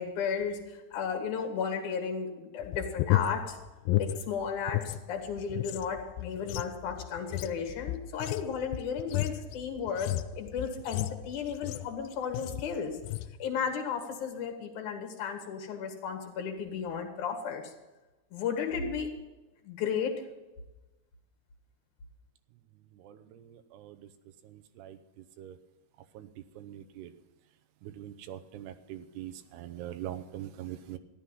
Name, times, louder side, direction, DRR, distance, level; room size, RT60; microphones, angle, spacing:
voice 1, 0.0-3.6 4.0-13.0 13.4-17.6 18.3-19.1 19.6-20.2, left 6 dB, 55° left, 4 dB, 2.9 m, -34 dB
sound 1, 2.6-5.0 5.3-12.0 12.3-12.7 13.0-13.3, left 14 dB, 85° left, 2.0 m, -33 dB
voice 2, 26.6-27.1 28.0-31.0, right 12 dB, 90° right, 10 dB, 3.0 m, -41 dB
14.5 x 12.0 x 5.5 m, 1.1 s
omnidirectional pair, 4.6 m